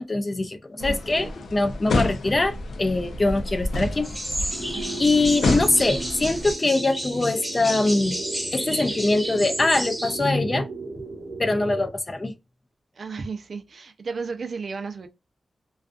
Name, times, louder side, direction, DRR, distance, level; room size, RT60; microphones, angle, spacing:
voice 1, 0.0-4.1 4.4-4.5 5.0-8.2 8.5-10.7 11.4-12.3, left 2 dB, 30° left, 0.4 m, -23 dB
sound 1, 0.8-6.5, left 2 dB, 80° left, 0.5 m, -29 dB
voice 2, 0.8-1.3 4.7-5.0 12.9-15.1, right 4 dB, 60° right, 0.5 m, -34 dB
sound 2, 4.0-10.3, right 1 dB, 5° right, 0.9 m, -32 dB
sound 3, 4.5-11.9, right 3 dB, 80° right, 0.8 m, -36 dB
2.4 x 2.3 x 2.4 m
wide cardioid pair, 105°, 0 cm